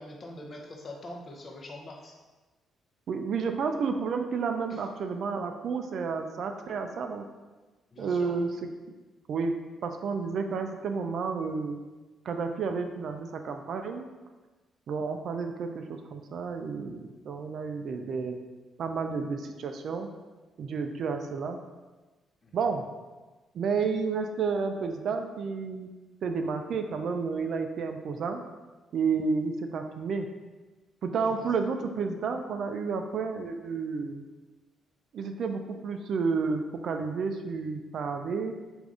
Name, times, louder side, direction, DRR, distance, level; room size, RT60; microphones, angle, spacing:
voice 1, 0.0-2.2 4.7-4.9 7.9-8.4 22.4-22.7 31.4-31.5, left 1 dB, 40° left, 1 dB, 0.6 m, -43 dB
voice 2, 3.1-7.3 8.0-8.5 9.3-9.6 9.8-11.8 12.3-14.1 14.9-18.4 18.8-20.1 20.6-21.6 22.5-22.8 23.5-25.9 26.2-28.4 28.9-30.3 31.0-34.2 35.1-38.5, right 5 dB, 65° right, 6 dB, 0.3 m, -31 dB
3.3 x 2.5 x 3.6 m, 1.2 s
cardioid pair, 90°, 0 cm